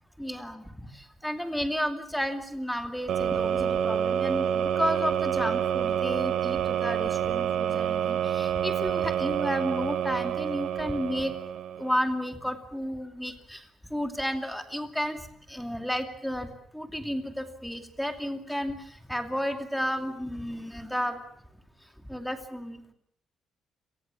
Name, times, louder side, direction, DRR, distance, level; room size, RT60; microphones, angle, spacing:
voice 1, 0.2-11.3 11.8-21.2 22.0-22.9, equal, ahead, 6 dB, 2.6 m, -32 dB
sound 1, 3.1-12.0, right 9 dB, 70° right, 1.3 m, -28 dB
29.5 x 19.5 x 7.1 m, 0.72 s
cardioid pair, 145°, 0 cm